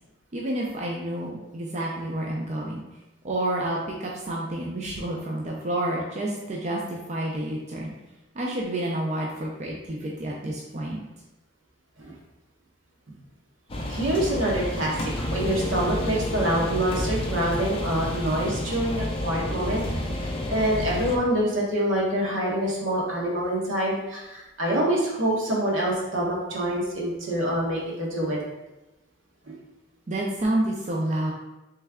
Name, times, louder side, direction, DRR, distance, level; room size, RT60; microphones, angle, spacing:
voice 1, 0.3-2.8 3.2-7.9 8.4-11.0 30.1-31.3, right 1 dB, 35° right, -2 dB, 0.4 m, -29 dB
sound 1, 13.7-21.2, left 1 dB, 30° left, 0.4 m, -30 dB
voice 2, 13.9-28.4 29.5-29.6, right 1 dB, 80° right, -4 dB, 1.1 m, -26 dB
3.3 x 3.2 x 3.5 m, 1.0 s
head